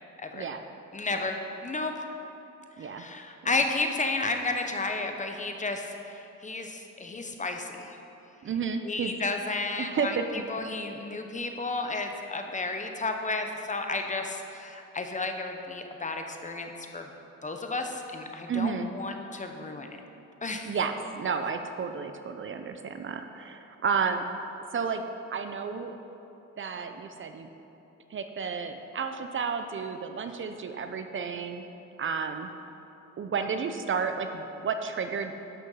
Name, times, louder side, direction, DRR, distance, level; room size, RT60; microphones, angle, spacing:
voice 1, 0.9-1.9 2.8-5.9 6.4-8.0 8.8-17.1 17.4-20.0 20.4-20.7, left 3 dB, 25° left, 4 dB, 1.0 m, -32 dB
voice 2, 8.4-9.1 9.8-10.2 18.5-18.9 20.6-24.3 24.7-25.0 25.3-26.0 26.6-27.5 28.1-31.6 32.0-32.5 33.2-35.3, right 6 dB, 40° right, 7 dB, 0.6 m, -31 dB
11.0 x 6.2 x 5.7 m, 3.0 s
cardioid pair, 90°, 30 cm